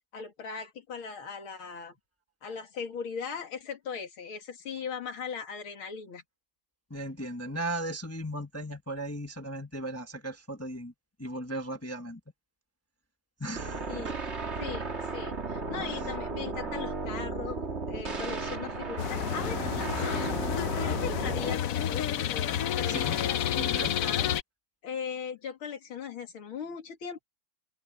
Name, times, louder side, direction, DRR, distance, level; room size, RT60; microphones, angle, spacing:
voice 1, 0.1-1.9 2.4-6.2 13.9-14.2 14.6-20.4 20.8-24.3 24.8-27.2, left 6 dB, 90° left, 3.1 m, -39 dB
voice 2, 6.9-10.9 11.2-12.2 13.4-14.3 15.9-16.1 22.9-23.2 23.5-23.9, right 1 dB, 10° left, 0.7 m, -37 dB
sound 1, 13.5-21.5, right 3 dB, 35° right, 2.2 m, -35 dB
sound 2, 19.0-24.4, left 10 dB, 65° left, 0.8 m, -30 dB
open air
omnidirectional pair, 2.2 m